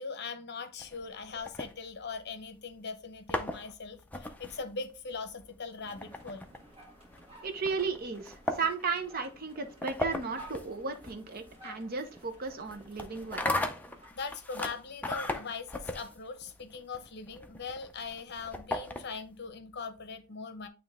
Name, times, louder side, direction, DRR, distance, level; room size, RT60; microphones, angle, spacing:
voice 1, 0.0-6.5 14.1-20.7, left 4 dB, 50° left, 0.9 m, -41 dB
sound 1, 0.8-2.4 3.0-19.4, left 1 dB, 10° left, 0.5 m, -38 dB
sound 2, 5.8-14.1, right 1 dB, 30° right, 1.8 m, -54 dB
voice 2, 7.4-13.5, right 4 dB, 45° right, 0.7 m, -35 dB
8.9 x 3.0 x 3.6 m
head